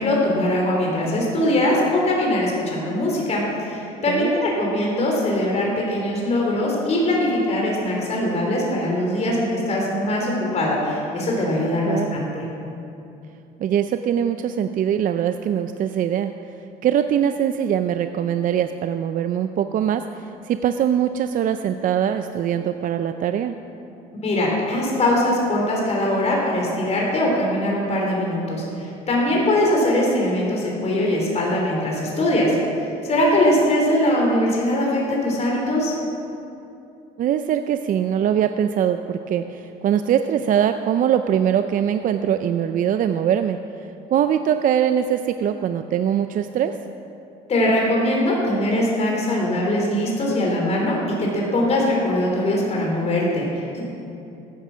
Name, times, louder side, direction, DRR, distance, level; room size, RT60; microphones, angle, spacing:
voice 1, 0.0-12.4 24.2-32.6 33.0-35.9 47.5-53.8, left 1 dB, 40° left, -2 dB, 4.0 m, -21 dB
voice 2, 4.1-4.4 11.9-12.2 13.6-16.3 16.8-23.6 37.2-43.6 44.1-46.8, right 9 dB, 50° right, 9 dB, 0.5 m, -22 dB
15.0 x 10.0 x 6.2 m, 2.7 s
cardioid pair, 95°, 17 cm